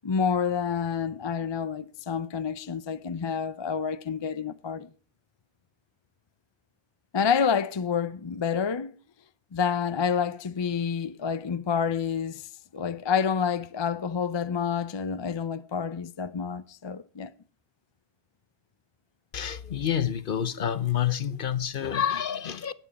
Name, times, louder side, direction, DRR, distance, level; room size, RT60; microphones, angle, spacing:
voice 1, 0.0-4.9 7.1-8.9 9.5-17.3, left 6 dB, 35° left, 0.5 m, -28 dB
voice 2, 19.3-22.7, left 9 dB, 60° left, 1.0 m, -28 dB
19.0 x 7.2 x 4.1 m
omnidirectional pair, 1.1 m